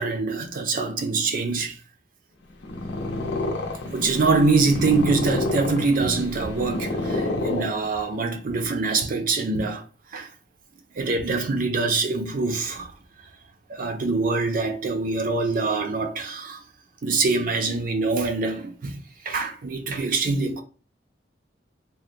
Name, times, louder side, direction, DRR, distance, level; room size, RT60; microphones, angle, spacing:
voice 1, 0.0-1.8 3.9-9.8 10.1-10.3 10.9-12.9 13.7-16.6 17.0-19.0 19.2-20.6, right 3 dB, 50° right, 0.5 m, -24 dB
Purr, 2.5-8.2, left 2 dB, 70° left, 0.6 m, -29 dB
3.5 x 2.1 x 2.6 m
head